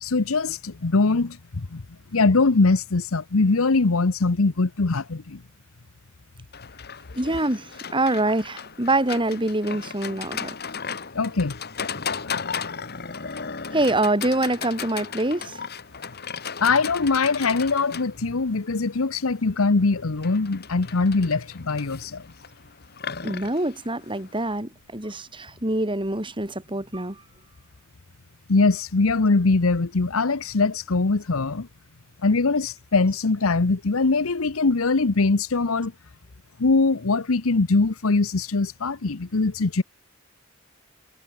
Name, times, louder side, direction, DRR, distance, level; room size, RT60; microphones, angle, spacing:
voice 1, 0.0-1.4 1.7-1.8 2.1-5.4 11.1-11.5 12.2-12.4 16.6-22.2 28.5-31.7 32.2-35.9 36.6-39.8, left 3 dB, 85° left, 0.9 m, -22 dB
Livestock farm animals working animals, 6.5-24.6, left 6 dB, 50° left, 2.3 m, -36 dB
voice 2, 7.2-10.5 13.7-15.6 23.2-27.2, right 2 dB, 25° right, 4.1 m, -25 dB
head